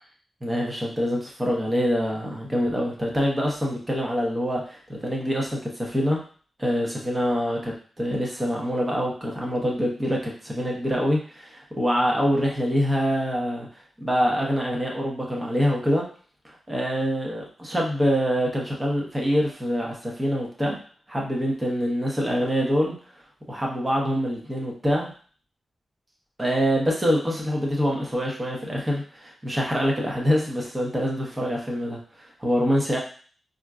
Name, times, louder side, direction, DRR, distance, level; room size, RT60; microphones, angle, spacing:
voice 1, 0.4-6.2 6.6-13.7 14.0-16.0 16.4-20.8 21.1-22.9 23.5-25.1 26.4-32.0 32.4-33.0, equal, 15° right, -2 dB, 0.9 m, -25 dB
4.4 x 2.6 x 2.4 m, 0.43 s
wide cardioid pair, 95°, 0 cm